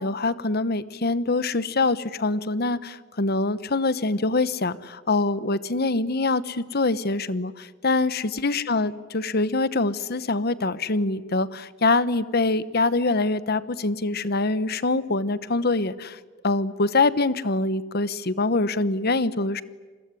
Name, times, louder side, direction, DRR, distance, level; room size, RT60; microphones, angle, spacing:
voice 1, 0.0-16.2 16.4-19.6, left 3 dB, 55° left, 15 dB, 1.0 m, -24 dB
27.5 x 21.0 x 9.8 m, 1.3 s
head